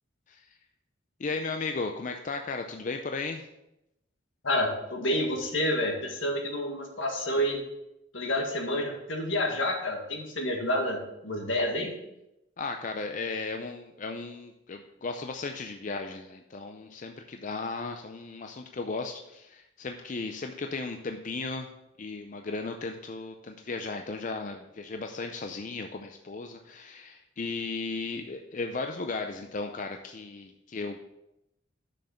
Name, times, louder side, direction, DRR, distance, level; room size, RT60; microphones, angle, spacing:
voice 1, 1.2-3.5 12.6-21.7 22.0-31.0, left 3 dB, 40° left, 5 dB, 0.5 m, -35 dB
voice 2, 4.4-7.6 8.1-11.9, left 1 dB, 80° left, 2 dB, 1.8 m, -29 dB
6.6 x 6.4 x 5.6 m, 0.88 s
head